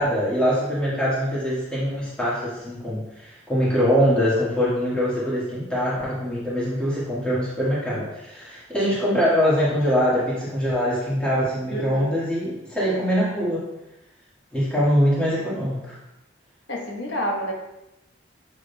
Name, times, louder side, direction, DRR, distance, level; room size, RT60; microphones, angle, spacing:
voice 1, 0.0-13.7 14.5-16.0, equal, 5° left, -9 dB, 1.5 m, -23 dB
voice 2, 11.7-12.1 16.7-17.5, equal, 75° left, 0 dB, 1.1 m, -28 dB
6.9 x 6.0 x 2.3 m, 0.93 s
head